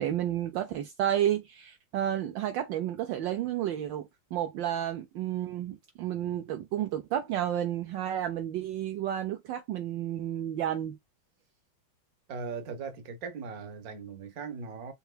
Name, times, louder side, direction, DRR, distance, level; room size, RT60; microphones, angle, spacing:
voice 1, 0.0-11.0, right 11 dB, 75° right, 1.2 m, -31 dB
voice 2, 12.3-14.9, right 5 dB, 50° right, 1.3 m, -39 dB
5.6 x 2.9 x 2.3 m
omnidirectional pair, 2.3 m